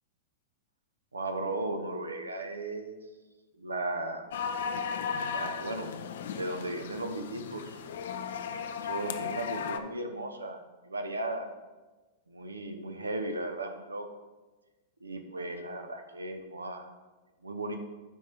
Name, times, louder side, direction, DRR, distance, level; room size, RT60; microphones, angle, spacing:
voice 1, 1.1-3.0 3.6-4.3 5.1-5.9 6.2-7.8 8.8-11.5 12.3-14.1 15.0-16.9 17.4-17.8, right 2 dB, 85° right, 6 dB, 0.7 m, -36 dB
sound 1, 4.3-9.8, left 6 dB, 65° left, 0.5 m, -36 dB
9.3 x 3.7 x 4.5 m, 1.2 s
figure-of-eight pair, 100°, 0 cm